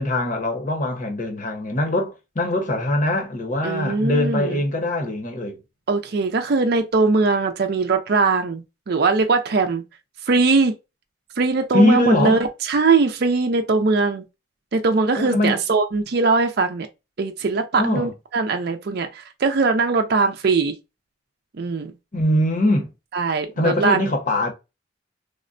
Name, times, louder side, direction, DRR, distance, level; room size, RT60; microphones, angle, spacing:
voice 1, 0.0-5.6 11.7-12.5 15.2-15.6 17.8-18.1 22.1-22.9 23.6-24.5, left 1 dB, 40° left, 0.8 m, -22 dB
voice 2, 3.6-4.6 5.9-9.8 10.3-10.8 11.4-14.2 14.7-16.9 17.2-20.7 21.6-21.9 23.1-24.1, right 4 dB, 55° right, 0.4 m, -21 dB
3.5 x 2.1 x 2.5 m
head